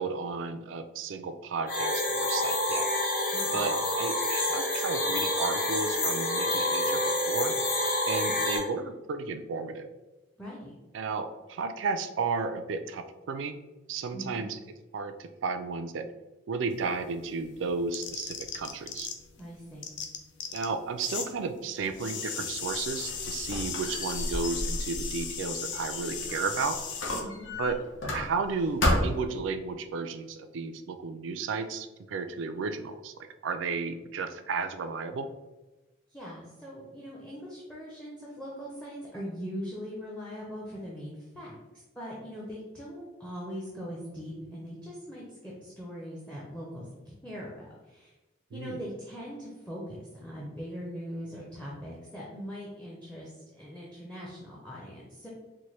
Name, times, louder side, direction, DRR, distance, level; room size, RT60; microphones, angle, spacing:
voice 1, 0.0-2.9 3.5-7.5 8.1-9.9 10.9-13.6 13.9-14.6 14.9-16.1 16.5-19.1 20.5-26.8 27.6-27.8 28.1-33.1 33.4-35.3 48.5-48.8, right 4 dB, 75° right, 9 dB, 0.3 m, -33 dB
sound 1, 1.7-8.6, left 1 dB, 45° left, 0.9 m, -28 dB
voice 2, 3.3-3.6 10.4-10.7 14.1-14.5 19.4-19.9 27.2-27.5 36.1-48.1 48.5-55.3, equal, 5° left, -5 dB, 0.5 m, -41 dB
sound 2, 16.7-19.4 19.7-21.3 21.6-27.2, left 7 dB, 65° left, 0.4 m, -37 dB
Squeak, 22.7-26.5 27.0-28.5 28.8-29.4, left 1 dB, 85° left, 0.9 m, -31 dB
4.2 x 2.2 x 3.1 m, 1.1 s
head